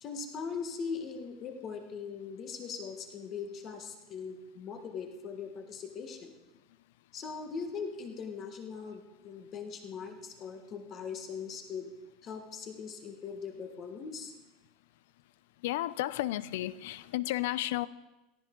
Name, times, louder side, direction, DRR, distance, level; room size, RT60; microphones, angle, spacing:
voice 1, 0.0-6.4 7.1-11.9 12.2-14.3, left 5 dB, 25° left, 5 dB, 1.5 m, -40 dB
voice 2, 15.6-17.9, left 15 dB, 75° left, 18 dB, 0.6 m, -32 dB
17.5 x 14.5 x 3.8 m, 1.0 s
supercardioid pair, 175°, 0 cm